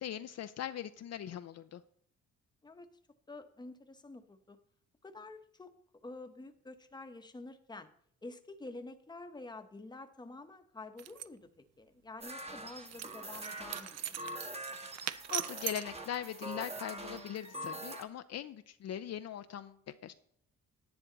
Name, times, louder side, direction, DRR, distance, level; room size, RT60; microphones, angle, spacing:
voice 1, 0.0-1.8 15.3-20.1, left 10 dB, 55° left, 10 dB, 0.6 m, -41 dB
voice 2, 3.3-4.6 5.0-7.9 8.2-14.2, left 2 dB, 15° left, 7 dB, 1.0 m, -49 dB
sound 1, 11.0-11.3 12.9-16.0, right 12 dB, 60° right, 0.5 m, -40 dB
sound 2, 12.2-18.0, right 1 dB, 20° right, 1.4 m, -44 dB
10.0 x 9.4 x 4.0 m, 0.66 s
cardioid pair, 90°, 30 cm